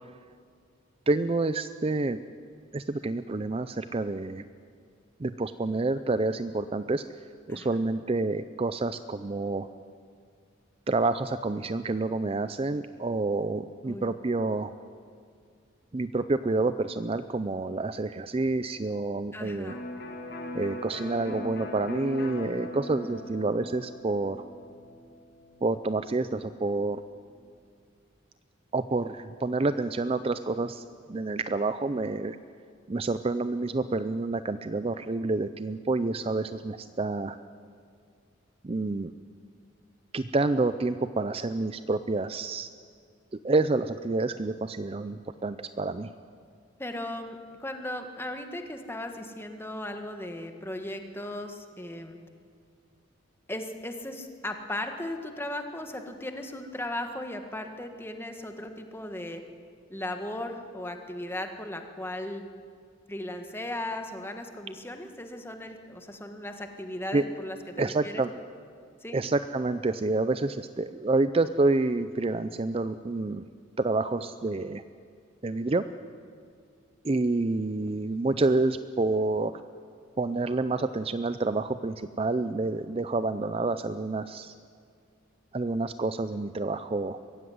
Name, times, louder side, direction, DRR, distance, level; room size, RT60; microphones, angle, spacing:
voice 1, 1.1-2.2 2.7-4.4 5.2-7.0 7.5-9.7 10.9-14.7 15.9-19.7 20.5-24.4 25.6-27.0 28.7-30.8 31.1-32.4 32.9-37.4 38.6-39.1 40.1-42.7 43.4-46.1 67.1-67.2 67.8-68.3 69.1-73.4 73.8-74.8 75.4-75.8 77.0-79.5 80.2-84.5 85.5-87.2, right 2 dB, 30° right, 12 dB, 0.4 m, -28 dB
voice 2, 19.3-19.8 23.0-23.2 46.8-52.2 53.5-59.4 59.9-62.4 63.1-68.2 69.0-69.2, left 1 dB, 10° left, 5 dB, 1.6 m, -37 dB
Electric guitar, 19.7-27.3, left 1 dB, 50° left, 2.5 m, -41 dB
22.5 x 15.5 x 9.4 m, 2.2 s
head